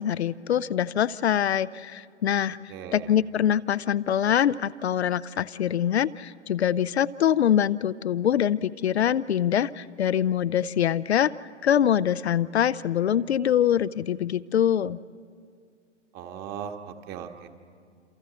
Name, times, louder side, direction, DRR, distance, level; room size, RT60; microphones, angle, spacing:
voice 1, 0.0-11.3 11.6-15.0, left 9 dB, 65° left, 16 dB, 0.5 m, -24 dB
voice 2, 2.7-3.1 16.1-17.5, right 8 dB, 25° right, 6 dB, 1.4 m, -38 dB
28.0 x 27.5 x 4.1 m, 2.2 s
figure-of-eight pair, 110°, 36 cm